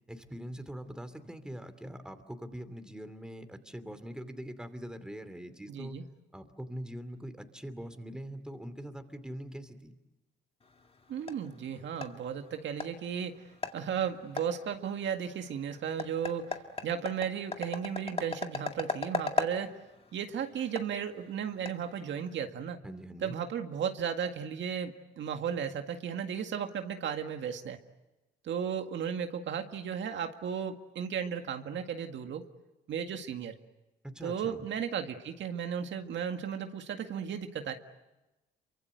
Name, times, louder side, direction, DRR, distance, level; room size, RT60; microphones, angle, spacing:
voice 1, 0.1-6.0 6.3-10.0 22.8-23.3 34.0-34.7, equal, 5° right, 10 dB, 2.7 m, -43 dB
voice 2, 5.7-6.0 11.1-13.4 13.7-16.6 16.8-19.8 20.1-22.8 23.2-27.8 28.4-32.4 32.9-33.5 34.2-37.7, right 8 dB, 70° right, 6 dB, 1.9 m, -35 dB
sound 1, 10.6-22.4, left 3 dB, 30° left, 2.1 m, -39 dB
28.0 x 24.5 x 7.9 m, 1.0 s
cardioid pair, 90°, 20 cm